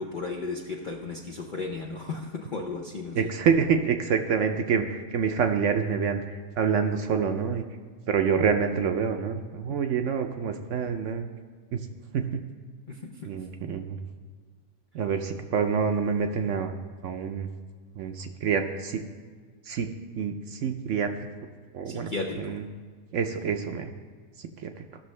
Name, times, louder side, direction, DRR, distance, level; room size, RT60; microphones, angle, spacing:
voice 1, 0.0-3.3 12.9-13.3 21.8-22.6, left 3 dB, 90° left, 0 dB, 0.4 m, -35 dB
voice 2, 3.1-7.6 8.1-11.3 11.7-11.8 12.1-12.4 13.2-14.0 14.9-16.7 17.0-17.5 17.9-19.0 19.6-19.9 20.1-21.1 21.7-22.1 22.4-22.6 23.1-23.9 24.4-24.7, right 6 dB, 65° right, 6 dB, 0.7 m, -27 dB
14.5 x 6.2 x 3.2 m, 1.6 s
omnidirectional pair, 1.7 m